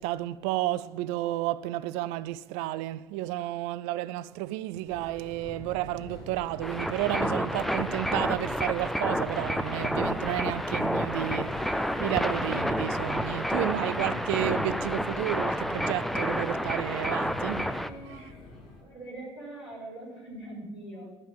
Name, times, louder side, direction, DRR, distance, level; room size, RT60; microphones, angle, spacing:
voice 1, 0.0-17.7 18.1-18.2, right 15 dB, 60° right, 0.4 m, -32 dB
sound 1, 4.8-18.8, left 2 dB, 65° left, 2.8 m, -42 dB
sound 2, 6.6-17.9, equal, ahead, 0.6 m, -30 dB
voice 2, 17.6-18.4 18.8-21.1, right 1 dB, 90° left, 4.2 m, -43 dB
12.5 x 5.5 x 8.6 m
figure-of-eight pair, 55°, 13 cm